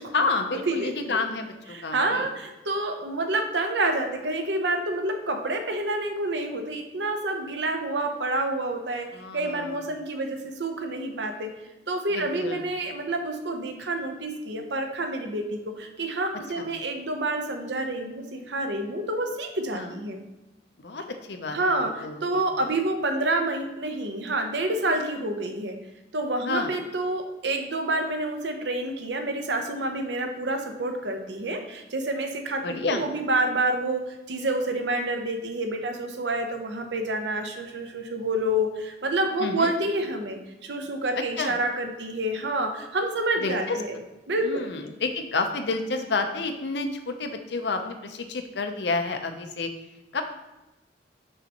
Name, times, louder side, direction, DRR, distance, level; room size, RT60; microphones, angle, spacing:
voice 1, 0.1-2.3 9.1-9.8 12.1-12.6 16.6-16.7 19.7-19.9 20.8-22.7 26.4-26.7 32.6-33.0 39.4-39.7 41.4-41.6 43.4-43.8 44.4-49.7 50.1-50.2, left 3 dB, 80° left, 6 dB, 0.7 m, -30 dB
voice 2, 0.7-1.2 1.7-11.5 11.9-20.2 21.5-25.8 26.1-44.0 44.3-44.7, right 2 dB, 90° right, 5 dB, 0.8 m, -28 dB
6.6 x 5.5 x 2.9 m, 1.0 s
head